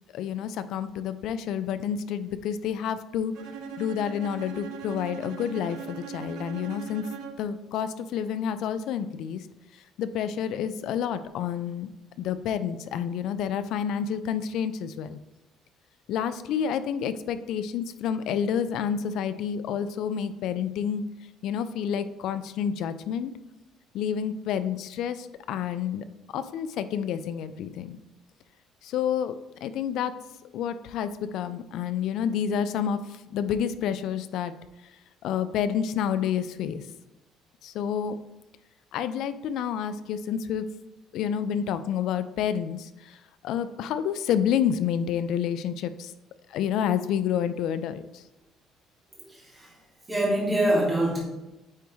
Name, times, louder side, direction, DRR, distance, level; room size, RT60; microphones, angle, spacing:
voice 1, 0.1-3.3 3.8-7.0 7.4-9.4 10.0-11.9 12.2-15.2 16.1-21.0 21.4-23.3 23.9-26.0 26.3-28.0 28.8-29.3 29.6-30.1 30.5-33.0 33.3-34.5 35.2-36.8 37.6-38.1 38.9-40.7 41.1-42.9 43.4-46.1 46.5-48.0, left 8 dB, 60° left, 12 dB, 0.4 m, -29 dB
Bowed string instrument, 3.3-7.6, right 6 dB, 90° right, 0.6 m, -40 dB
voice 2, 49.3-49.8 50.1-51.2, right 1 dB, 10° right, -4 dB, 1.9 m, -25 dB
8.9 x 3.5 x 3.1 m, 0.98 s
cardioid pair, 165°, 0 cm